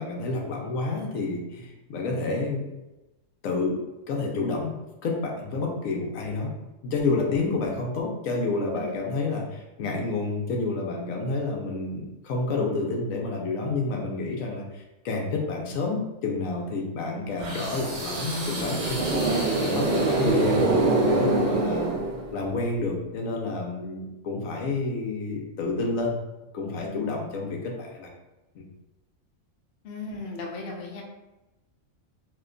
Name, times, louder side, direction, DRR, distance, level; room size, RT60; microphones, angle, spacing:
voice 1, 0.0-2.7 3.4-4.7 5.0-6.5 6.8-21.9 22.3-26.1 26.5-28.1 28.5-28.7, left 3 dB, 85° left, 0 dB, 1.0 m, -29 dB
sound 1, 17.4-22.5, right 2 dB, 65° right, 1.1 m, -25 dB
voice 2, 29.8-31.0, left 3 dB, 55° left, 0 dB, 0.7 m, -36 dB
2.8 x 2.2 x 3.7 m, 1.0 s
omnidirectional pair, 1.4 m